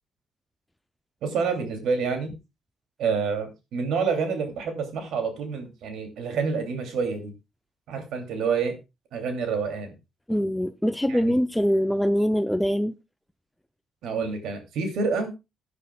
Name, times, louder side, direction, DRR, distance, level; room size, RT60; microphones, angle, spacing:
voice 1, 1.2-2.3 3.0-7.3 7.9-8.7 9.1-9.9 11.1-11.3 14.0-15.3, right 5 dB, 80° right, 2.8 m, -28 dB
voice 2, 10.3-12.9, equal, 5° left, 0.5 m, -23 dB
16.5 x 9.7 x 2.3 m
cardioid pair, 90°, 0 cm